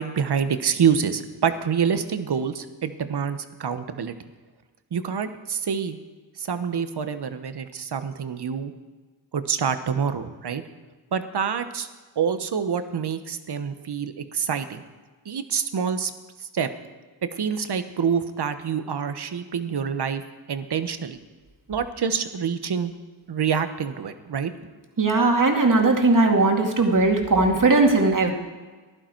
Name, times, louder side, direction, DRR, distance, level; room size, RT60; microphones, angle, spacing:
voice 1, 0.0-4.1 4.9-6.0 6.4-8.7 9.3-10.6 11.1-11.9 12.2-14.8 15.2-16.1 16.4-16.7 17.3-20.2 20.5-21.2 21.7-22.9 23.3-24.5, right 7 dB, 60° right, 10 dB, 1.1 m, -26 dB
voice 2, 25.0-28.3, right 3 dB, 45° right, 2 dB, 2.3 m, -19 dB
14.5 x 11.5 x 4.6 m, 1.4 s
cardioid pair, 55°, 45 cm